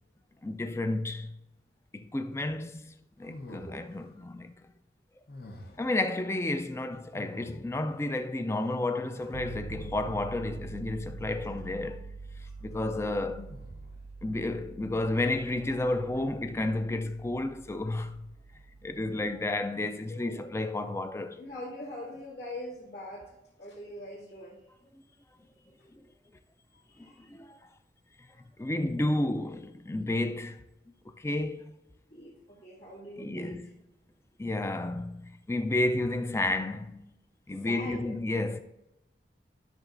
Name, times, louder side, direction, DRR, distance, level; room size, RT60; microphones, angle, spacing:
voice 1, 0.4-1.4 1.9-4.5 5.8-12.1 12.6-13.5 14.2-18.3 18.8-21.4 25.9-26.0 27.0-27.6 28.6-30.6 31.2-31.7 33.2-33.6 34.4-37.1 37.5-38.6, left 2 dB, 15° left, 0.4 m, -31 dB
sound 1, 3.2-4.2 5.3-6.0 7.1-8.0 9.1-10.2 11.2-11.8 13.4-14.1, left 1 dB, 60° left, 0.8 m, -47 dB
voice 2, 3.5-3.9 12.5-12.6 13.0-13.3 20.1-20.6 21.4-23.3 23.6-24.6 26.9-27.3 28.4-28.5 29.0-29.3 32.1-33.7 37.5-38.1, left 1 dB, 75° left, 2.1 m, -43 dB
sound 2, 9.3-19.5, right 4 dB, 65° right, 0.5 m, -45 dB
12.0 x 6.2 x 2.5 m
head